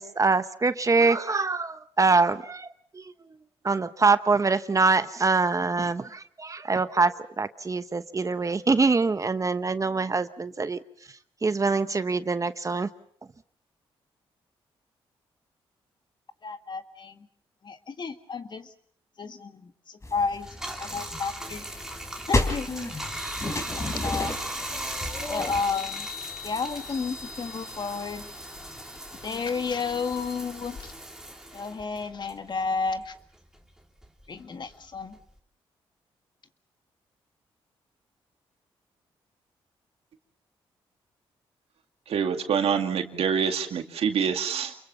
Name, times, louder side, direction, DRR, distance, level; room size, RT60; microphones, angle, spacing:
voice 1, 0.0-2.7 2.9-3.0 3.6-10.8 11.4-12.9, right 4 dB, 30° right, 12 dB, 1.1 m, -24 dB
voice 2, 16.4-17.3 17.6-18.7 19.2-21.6 22.3-22.7 23.7-24.4 25.3-26.1 26.4-28.3 29.2-30.9 31.5-33.1 34.3-35.2, left 5 dB, 45° left, 8 dB, 1.8 m, -32 dB
sound 1, 20.0-25.6, left 2 dB, 30° left, 4.2 m, -32 dB
Bathtub (filling or washing), 20.4-33.2 33.5-35.4, right 1 dB, 5° right, 3.1 m, -39 dB
Chime, 22.9-31.0, left 4 dB, 70° left, 4.3 m, -45 dB
voice 3, 42.1-44.8, right 7 dB, 75° right, 6 dB, 2.2 m, -26 dB
28.5 x 22.5 x 5.7 m, 0.62 s
cardioid pair, 70°, 10 cm